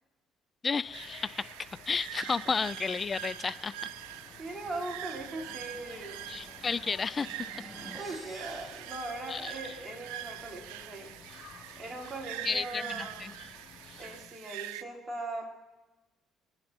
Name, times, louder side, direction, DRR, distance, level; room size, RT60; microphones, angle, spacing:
voice 1, 0.6-3.9 6.3-7.5 9.3-9.5 12.4-13.3, left 5 dB, 35° left, 19 dB, 0.5 m, -32 dB
sound 1, 0.8-14.3, left 7 dB, 65° left, 3.3 m, -54 dB
sound 2, 0.9-14.8, right 14 dB, 90° right, 0.5 m, -44 dB
sound 3, 2.2-9.8, left 1 dB, 5° right, 3.5 m, -54 dB
voice 2, 4.4-6.2 8.0-11.1 11.8-13.3 14.0-15.5, right 2 dB, 25° right, -1 dB, 4.4 m, -40 dB
28.5 x 10.5 x 4.5 m, 1.1 s
supercardioid pair, 75°, 0 cm